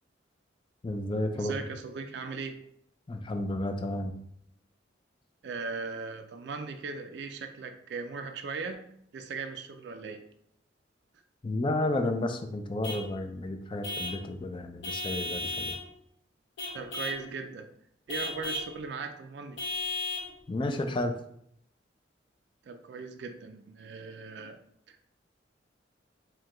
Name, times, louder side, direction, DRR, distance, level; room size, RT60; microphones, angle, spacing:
voice 1, 0.8-1.5 3.1-4.1 11.4-15.7 20.5-21.1, left 1 dB, 25° left, 6 dB, 0.4 m, -31 dB
voice 2, 1.3-2.7 5.4-8.9 9.1-10.3 16.7-17.7 18.1-19.6 22.6-24.6 24.9-25.1, right 4 dB, 60° right, 6 dB, 0.3 m, -38 dB
Vehicle horn car horn honking / Truck, 12.8-13.1 13.8-14.2 14.8-15.8 16.6-17.2 18.1-18.7 19.6-20.3, left 2 dB, 60° left, 1.2 m, -35 dB
4.5 x 2.2 x 3.7 m, 0.71 s
head